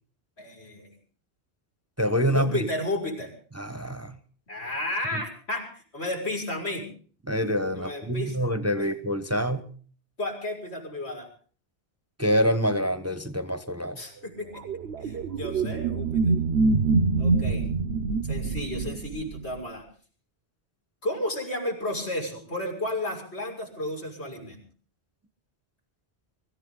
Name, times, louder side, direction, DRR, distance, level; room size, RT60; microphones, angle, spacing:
voice 1, 0.4-0.9 2.3-3.3 4.5-6.9 7.7-8.4 8.8-8.9 10.2-11.3 14.0-14.6 15.0-16.3 17.2-17.7 18.2-19.8 21.0-24.6, left 1 dB, 75° left, 1 dB, 6.4 m, -32 dB
voice 2, 2.0-2.7 3.5-4.1 5.1-5.2 7.2-9.7 12.2-14.0, equal, 15° right, 10 dB, 1.1 m, -26 dB
sound 1, 14.6-19.6, right 3 dB, 70° right, 1.2 m, -25 dB
24.5 x 15.0 x 3.9 m, 0.43 s
omnidirectional pair, 1.1 m